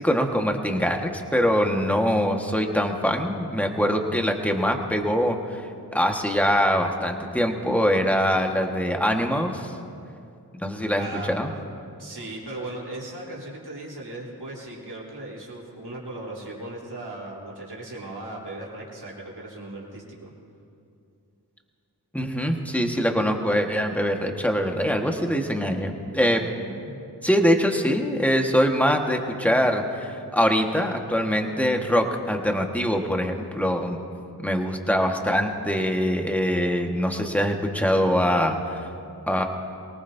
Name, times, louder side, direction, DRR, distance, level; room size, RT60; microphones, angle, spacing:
voice 1, 0.0-5.6 5.9-9.7 10.6-11.5 22.1-26.5 27.2-34.0 34.4-38.9 39.3-39.4, equal, 5° left, 3 dB, 1.6 m, -23 dB
voice 2, 10.9-11.4 12.0-20.3 26.6-27.1, right 2 dB, 75° right, -5 dB, 3.8 m, -37 dB
23.5 x 19.0 x 2.8 m, 2.5 s
cardioid pair, 45°, 40 cm